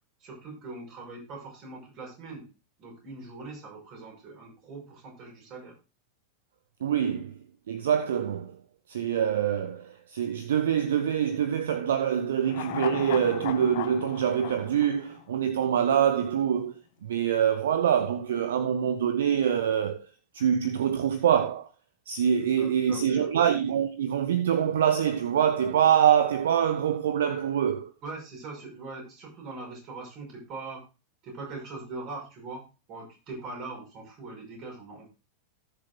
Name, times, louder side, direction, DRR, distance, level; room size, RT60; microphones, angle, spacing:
voice 1, 0.2-2.4 2.8-5.8 22.6-23.3 28.0-30.8 31.2-32.6 32.9-35.1, right 3 dB, 40° right, 6.0 m, -41 dB
voice 2, 6.8-7.4 7.7-8.6 8.9-20.1 20.3-21.7 22.1-27.9, right 9 dB, 60° right, 0.9 m, -25 dB
sound 1, 12.5-15.9 16.2-16.3, left 13 dB, 50° left, 0.8 m, -37 dB
18.0 x 6.9 x 2.3 m
figure-of-eight pair, 90°, 0 cm